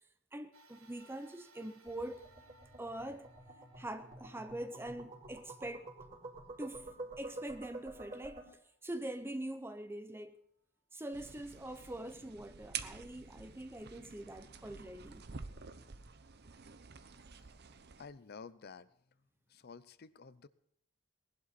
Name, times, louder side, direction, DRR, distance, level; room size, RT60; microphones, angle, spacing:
voice 1, 0.3-2.3 2.8-3.3 3.8-5.9 6.6-8.5 8.8-10.4 10.9-15.2, right 1 dB, 10° right, 0.6 m, -44 dB
sound 1, 0.5-9.1 9.7-9.8 11.0-11.1, right 1 dB, 85° right, 1.8 m, -66 dB
sound 2, 1.9-8.4, right 2 dB, 35° right, 4.1 m, -49 dB
sound 3, 11.1-18.1, right 6 dB, 50° right, 0.8 m, -49 dB
voice 2, 18.0-18.9 19.5-20.5, left 5 dB, 50° left, 0.6 m, -51 dB
19.5 x 11.5 x 4.2 m
head